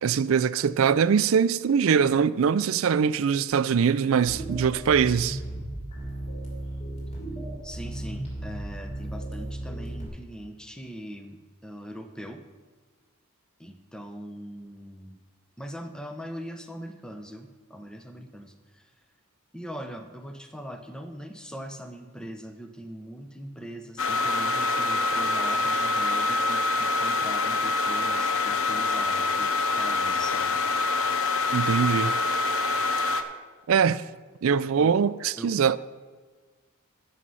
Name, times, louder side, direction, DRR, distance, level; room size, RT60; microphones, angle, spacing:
voice 1, 0.0-5.4 31.5-32.2 33.7-34.0 34.4-35.8, right 6 dB, 70° right, 0.4 m, -22 dB
sound 1, 4.3-10.1, right 1 dB, 30° left, 3.4 m, -35 dB
voice 2, 7.6-12.4 13.6-15.2 15.6-18.8 19.5-30.6 34.8-34.9 35.4-35.5, equal, 5° left, 0.8 m, -41 dB
sound 2, 24.0-33.2, left 3 dB, 70° left, 0.8 m, -25 dB
14.0 x 6.3 x 5.6 m
head